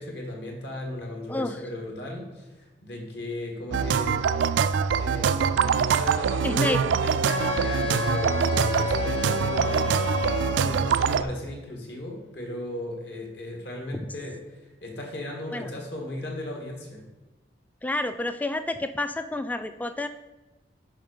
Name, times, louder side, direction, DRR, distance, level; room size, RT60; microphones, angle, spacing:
voice 1, 0.0-4.2 4.9-10.2 10.4-17.0, left 1 dB, 65° left, 1 dB, 1.8 m, -36 dB
sound 1, 3.7-11.2, right 6 dB, 85° right, 0.4 m, -24 dB
voice 2, 6.4-6.8 13.9-14.1 15.5-15.7 17.8-20.1, left 2 dB, 10° left, 10 dB, 0.3 m, -29 dB
Wind instrument woodwind instrument, 7.3-10.8, left 7 dB, 85° left, 0.7 m, -32 dB
7.5 x 5.2 x 5.1 m, 1.1 s
head